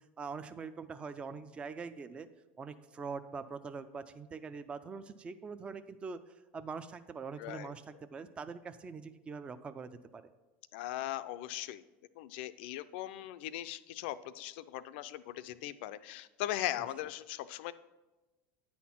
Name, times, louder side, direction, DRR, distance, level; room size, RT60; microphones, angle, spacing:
voice 1, 0.0-2.3 2.6-10.2, right 5 dB, 20° right, 11 dB, 0.3 m, -43 dB
voice 2, 7.4-7.7 10.7-11.8 12.2-17.7, left 14 dB, 75° left, 14 dB, 0.4 m, -39 dB
9.4 x 4.3 x 5.7 m, 1.1 s
supercardioid pair, 135°, 6 cm